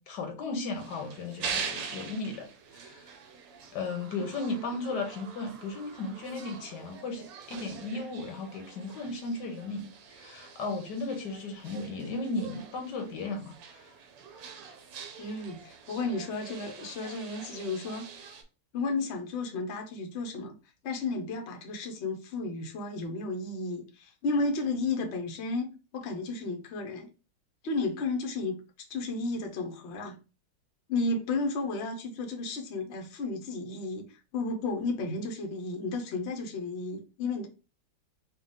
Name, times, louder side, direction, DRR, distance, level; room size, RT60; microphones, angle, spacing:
voice 1, 0.0-3.1 3.7-13.9, left 3 dB, 75° left, 1.5 m, -36 dB
sound 1, 0.7-18.4, right 6 dB, 85° right, 1.5 m, -44 dB
voice 2, 15.2-18.3 18.7-20.5 20.8-25.7 25.9-27.1 27.6-28.6 28.9-30.2 30.9-37.5, left 3 dB, 50° left, 0.9 m, -33 dB
4.7 x 2.4 x 3.5 m
omnidirectional pair, 1.9 m